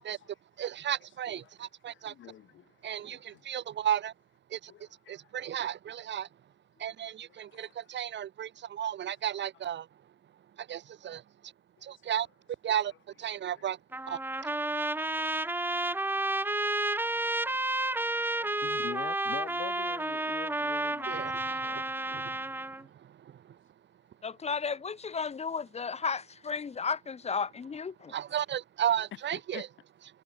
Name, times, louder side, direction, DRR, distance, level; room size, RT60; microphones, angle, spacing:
voice 1, 0.6-2.1 2.8-4.1 4.5-6.3 6.8-9.9 10.6-11.5 11.8-12.3 12.6-12.9 13.2-13.8 14.1-14.2 21.1-23.6 28.1-29.7, right 10 dB, 65° right, 3.5 m, -34 dB
voice 2, 1.9-2.7 3.0-3.4 4.7-4.8 5.2-5.3 7.3-7.7 13.6-13.7 14.5-14.6 14.8-15.3 15.7-16.9 17.3-17.6 18.0-21.3 21.6-21.9 22.4-22.6 29.3-29.6, left 12 dB, 75° left, 2.6 m, -47 dB
Trumpet, 13.9-22.8, right 2 dB, 10° right, 1.3 m, -31 dB
voice 3, 24.2-28.1, left 5 dB, 35° left, 0.9 m, -34 dB
cardioid pair, 90°, 20 cm